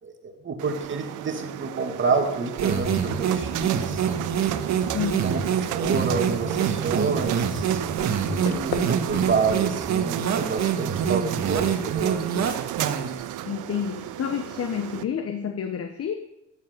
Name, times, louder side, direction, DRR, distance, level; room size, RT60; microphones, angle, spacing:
voice 1, 0.0-4.0 5.2-12.5, right 4 dB, 40° right, 4 dB, 1.9 m, -29 dB
sound 1, 0.6-15.0, right 13 dB, 80° right, 0.7 m, -33 dB
sound 2, 2.6-13.2, right 7 dB, 65° right, 1.7 m, -26 dB
voice 2, 4.9-5.3 6.2-6.3 13.5-16.2, left 8 dB, 50° left, 8 dB, 1.1 m, -29 dB
sound 3, 5.4-10.6, left 7 dB, 75° left, 1.3 m, -40 dB
14.0 x 9.9 x 5.2 m, 0.86 s
cardioid pair, 90°, 30 cm